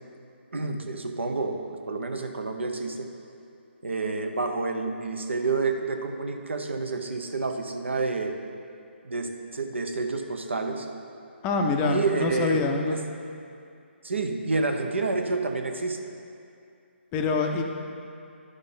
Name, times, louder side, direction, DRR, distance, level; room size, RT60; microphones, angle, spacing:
voice 1, 0.5-3.1 3.8-8.4 9.0-10.9 11.8-13.0 14.0-16.0, right 3 dB, 70° right, 5 dB, 0.9 m, -29 dB
voice 2, 11.4-13.0 17.1-17.6, left 4 dB, 20° left, 3 dB, 0.5 m, -25 dB
11.0 x 6.5 x 3.9 m, 2.5 s
figure-of-eight pair, 140°, 7 cm